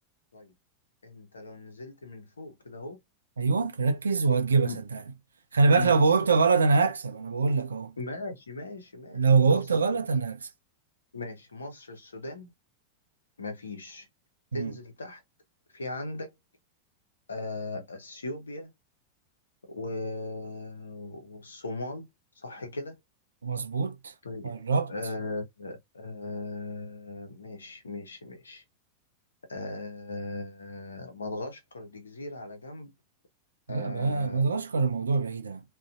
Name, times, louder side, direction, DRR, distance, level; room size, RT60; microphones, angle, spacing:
voice 1, 1.0-3.0 4.6-4.8 5.7-6.0 8.0-9.6 11.1-12.5 13.4-14.1 14.5-15.2 15.7-16.3 17.3-18.7 19.7-22.1 22.4-22.9 24.2-24.5 24.9-28.6 29.5-32.9 33.7-34.4, left 2 dB, 75° left, 0.8 m, -38 dB
voice 2, 3.4-5.0 5.5-7.9 9.1-10.5 14.5-14.8 23.4-24.1 24.4-24.9 33.7-35.6, right 4 dB, 70° right, 0.4 m, -24 dB
2.5 x 2.3 x 2.4 m
figure-of-eight pair, 90°, 0 cm